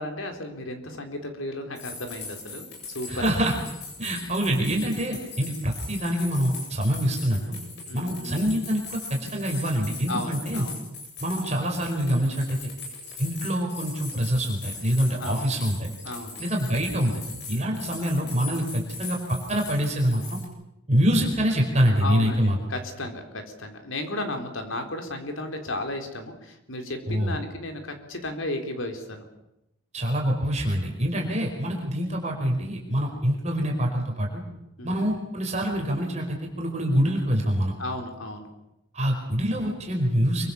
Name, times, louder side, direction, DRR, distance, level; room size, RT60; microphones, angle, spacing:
voice 1, 0.0-3.3 7.9-8.5 10.1-10.8 15.2-15.5 16.0-16.4 17.5-17.8 22.0-29.3 31.1-31.4 34.8-35.1 37.8-38.5, left 1 dB, 70° left, 5 dB, 4.1 m, -34 dB
sound 1, 1.7-20.4, left 4 dB, 50° left, 7.9 m, -40 dB
voice 2, 3.1-3.5 4.0-7.6 7.9-10.6 11.2-12.6 13.2-15.9 16.4-17.1 17.5-19.2 19.5-20.4 20.9-22.6 27.1-27.4 29.9-34.4 34.8-37.7 38.9-40.5, equal, 30° right, 0 dB, 4.8 m, -25 dB
26.5 x 24.0 x 7.2 m, 0.87 s
head